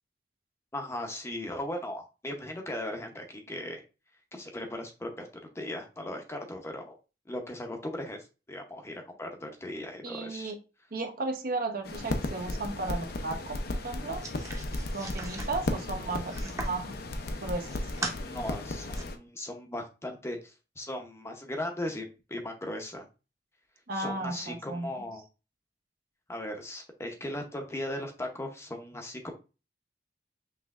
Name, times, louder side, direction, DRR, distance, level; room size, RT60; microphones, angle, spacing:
voice 1, 0.7-3.8 4.3-7.0 7.3-10.5 18.2-23.1 23.9-25.2 26.3-29.3, left 1 dB, 15° left, 3 dB, 0.7 m, -38 dB
voice 2, 10.0-10.6 10.9-14.2 14.9-17.0 17.4-17.9 23.9-25.1, right 3 dB, 55° right, 4 dB, 0.8 m, -35 dB
sound 1, 11.8-19.2, left 2 dB, 60° left, 0.6 m, -35 dB
sound 2, 14.2-16.8 17.3-18.2 18.6-19.0, right 2 dB, 20° right, 0.8 m, -39 dB
5.7 x 3.1 x 2.4 m, 0.31 s
head